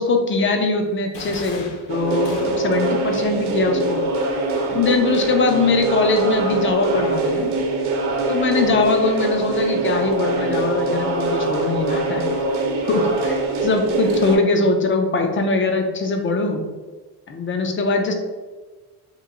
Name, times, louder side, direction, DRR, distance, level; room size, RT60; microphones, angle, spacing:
voice 1, 0.0-4.0 4.7-7.5 8.3-12.3 12.8-16.6 17.3-18.1, left 3 dB, 25° left, 4 dB, 0.4 m, -21 dB
sound 1, 1.1-2.9, left 3 dB, 60° left, 0.9 m, -36 dB
sound 2, 1.9-14.4, right 3 dB, 80° right, 0.8 m, -23 dB
3.0 x 2.5 x 3.6 m, 1.3 s
cardioid pair, 100°, 49 cm